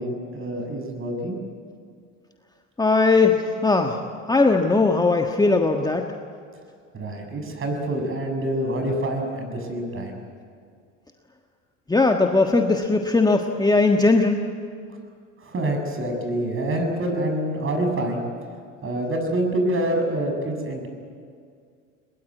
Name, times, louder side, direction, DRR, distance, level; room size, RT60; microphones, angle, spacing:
voice 1, 0.0-1.4 6.9-10.2 15.4-18.2 18.8-20.9, right 1 dB, 35° right, 4 dB, 6.8 m, -26 dB
voice 2, 2.8-4.0 4.3-6.0 11.9-14.4, left 3 dB, 10° left, 3 dB, 1.5 m, -19 dB
21.5 x 21.5 x 9.5 m, 2.2 s
hypercardioid pair, 85°, 38 cm